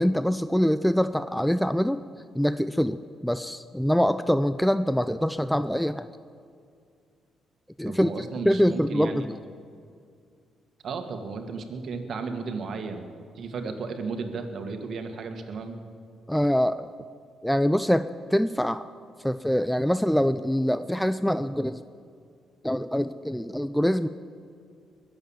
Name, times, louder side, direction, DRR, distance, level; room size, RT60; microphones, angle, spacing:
voice 1, 0.0-2.0 2.3-6.1 7.8-8.1 8.4-9.4 16.3-16.9 17.4-18.8 19.2-21.8 22.6-24.1, equal, ahead, 12 dB, 0.4 m, -24 dB
voice 2, 7.8-9.2 10.8-13.1 13.4-15.8, right 4 dB, 60° right, 5 dB, 1.9 m, -34 dB
21.5 x 8.0 x 7.3 m, 2.2 s
cardioid pair, 90°, 0 cm